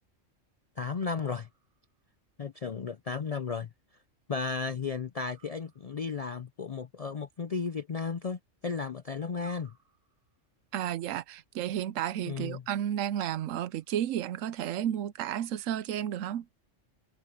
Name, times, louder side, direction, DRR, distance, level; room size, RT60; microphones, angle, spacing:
voice 1, 0.8-1.5 2.4-3.7 4.3-9.7 12.2-12.6, left 5 dB, 55° left, 0.4 m, -34 dB
sound 1, 1.2-2.1 5.1-6.2 9.4-10.5 13.1-14.1, right 7 dB, 40° right, 5.0 m, -62 dB
voice 2, 10.7-16.5, right 11 dB, 80° right, 1.0 m, -32 dB
open air
omnidirectional pair, 1.3 m